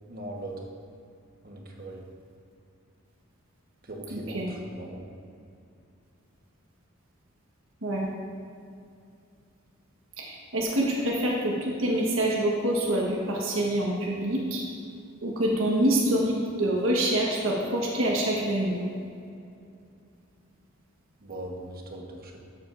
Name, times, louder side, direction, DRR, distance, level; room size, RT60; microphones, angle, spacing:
voice 1, 0.1-0.6 1.4-2.0 3.8-5.1 21.2-22.4, right 1 dB, 45° right, 0 dB, 1.3 m, -39 dB
voice 2, 4.1-4.5 7.8-8.1 10.2-14.6 15.2-18.8, right 1 dB, 70° right, -3 dB, 1.3 m, -26 dB
12.5 x 8.7 x 2.6 m, 2.5 s
head